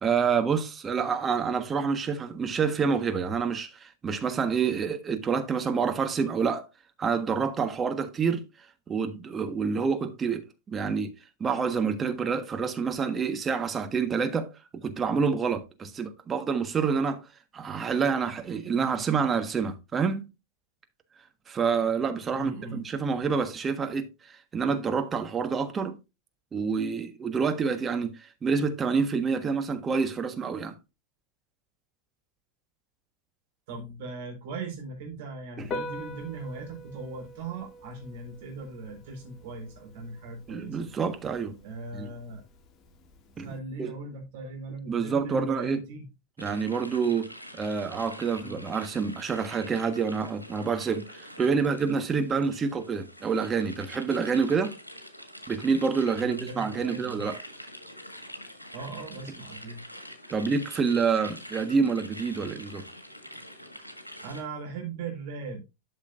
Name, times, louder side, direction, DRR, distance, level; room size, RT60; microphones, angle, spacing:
voice 1, 0.0-6.7 7.0-8.4 8.9-11.1 11.4-14.5 14.8-17.2 17.5-20.2 21.5-25.9 26.5-30.7 35.6-35.7 40.5-41.5 41.9-42.1 43.4-43.5 43.8-43.9 44.9-45.8 46.4-54.7 55.5-57.4 60.3-62.8, right 5 dB, 20° right, 1.4 m, -27 dB
voice 2, 22.3-22.9 33.7-40.8 41.6-42.4 43.4-46.0 48.4-48.6 56.2-57.3 58.7-59.8 64.2-65.6, right 3 dB, 50° right, 4.1 m, -39 dB
Piano, 35.6-43.6, left 1 dB, 30° left, 1.4 m, -44 dB
sound 1, 46.4-64.4, equal, 85° left, 1.6 m, -45 dB
12.0 x 6.4 x 2.5 m
figure-of-eight pair, 90°, 0 cm